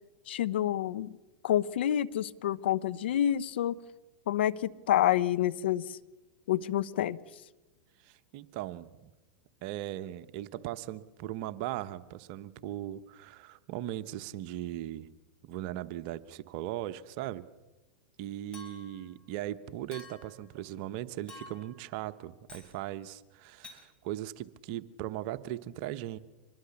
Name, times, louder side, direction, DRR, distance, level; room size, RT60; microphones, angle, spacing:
voice 1, 0.3-1.1 1.4-3.8 4.3-6.0 6.5-7.2, left 11 dB, 75° left, 15 dB, 0.9 m, -28 dB
voice 2, 8.0-9.1 9.6-15.1 15.4-17.4 18.2-26.2, right 13 dB, 55° right, 13 dB, 1.0 m, -38 dB
Chink clink, 18.5-19.0 19.9-20.4 21.3-21.8 22.5-22.8 23.6-23.8, left 3 dB, 15° left, 5.0 m, -49 dB
25.5 x 21.0 x 7.1 m, 1.1 s
hypercardioid pair, 110°, 6 cm